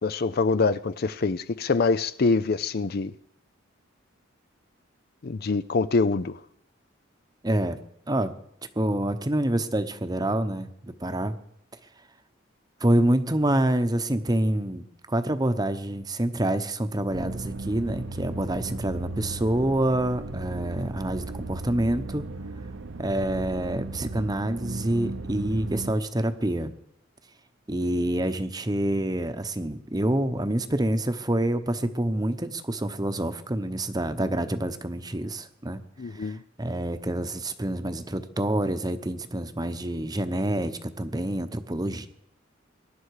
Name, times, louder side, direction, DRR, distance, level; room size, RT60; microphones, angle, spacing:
voice 1, 0.0-3.1 5.2-6.4 36.0-36.4, left 4 dB, 50° left, 0.5 m, -25 dB
voice 2, 7.4-7.8 8.1-8.3 8.8-11.4 12.8-22.3 23.0-26.7 27.7-35.8 36.2-42.1, right 1 dB, 20° right, 0.9 m, -27 dB
sound 1, 17.1-25.9, right 2 dB, 80° right, 1.0 m, -36 dB
23.0 x 11.0 x 4.8 m
head